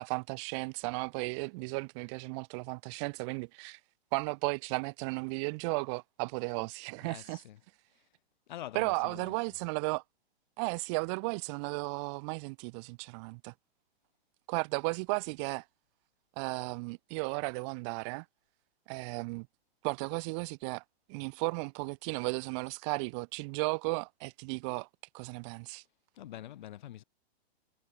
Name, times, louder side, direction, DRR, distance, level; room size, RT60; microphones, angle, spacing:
voice 1, 0.0-3.8 4.1-7.4 8.7-10.0 10.6-13.5 14.5-15.6 16.4-18.2 18.9-19.5 19.8-20.8 21.1-24.9 25.1-25.8, right 32 dB, 25° right, 4.7 m, -35 dB
voice 2, 7.0-7.6 7.9-8.2 8.5-9.4 26.1-27.0, left 12 dB, 45° left, 3.7 m, -46 dB
hypercardioid pair, 175°, 33 cm